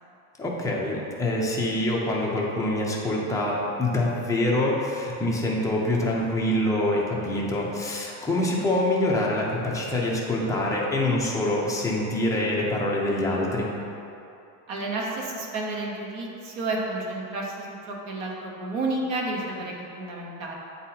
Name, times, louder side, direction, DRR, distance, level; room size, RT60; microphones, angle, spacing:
voice 1, 0.4-13.7, left 1 dB, 10° left, -4 dB, 0.5 m, -25 dB
voice 2, 14.7-20.5, right 2 dB, 55° right, -2 dB, 1.1 m, -31 dB
8.8 x 4.0 x 2.8 m, 2.8 s
cardioid pair, 160°, 41 cm